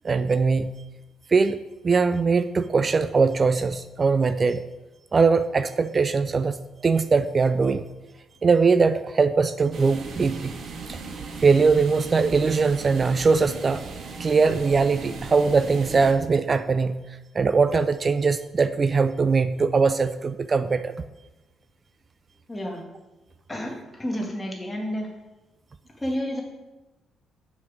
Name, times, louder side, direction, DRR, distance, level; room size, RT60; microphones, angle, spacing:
voice 1, 0.0-0.7 1.3-1.6 1.8-4.6 5.1-6.5 6.8-7.8 8.4-10.5 10.9-11.0 11.4-13.8 14.2-17.0 17.3-20.9, right 4 dB, 35° right, 11 dB, 0.3 m, -21 dB
sound 1, 9.7-16.1, right 4 dB, 60° right, 1.0 m, -37 dB
voice 2, 22.5-22.8 23.5-25.1 26.0-26.4, equal, 20° left, 0 dB, 1.8 m, -30 dB
6.3 x 5.2 x 6.2 m, 1.1 s
cardioid pair, 90°, 0 cm